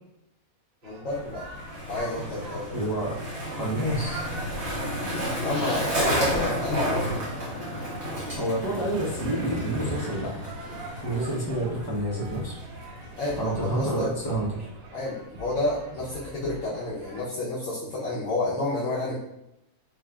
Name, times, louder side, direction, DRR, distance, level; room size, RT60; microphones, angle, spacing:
voice 1, 0.8-1.4 1.9-2.7 5.4-7.1 13.2-14.1 14.9-19.1, left 2 dB, 65° left, -9 dB, 1.2 m, -30 dB
sound 1, 0.8-17.2, right 2 dB, 70° right, 1.0 m, -45 dB
Skateboard, 1.1-13.8, equal, 50° right, 1.7 m, -32 dB
voice 2, 2.7-3.1 3.5-4.2 8.4-10.4 11.0-12.6 13.4-14.7, right 1 dB, 20° left, -5 dB, 0.6 m, -28 dB
4.5 x 2.8 x 2.3 m, 0.84 s
omnidirectional pair, 1.5 m